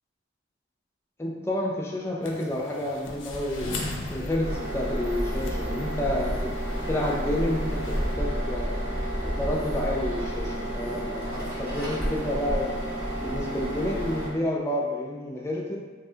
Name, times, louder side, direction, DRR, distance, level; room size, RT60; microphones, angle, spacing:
voice 1, 1.2-8.8 9.2-12.8 13.1-15.8, left 1 dB, 15° left, -2 dB, 0.3 m, -30 dB
sound 1, 2.2-8.1, left 3 dB, 80° left, 0.4 m, -41 dB
Bird, 3.1-10.3, equal, 90° right, 1.0 m, -34 dB
sound 2, 4.4-14.3, equal, 10° right, 0.8 m, -32 dB
3.3 x 2.2 x 2.7 m, 1.4 s
head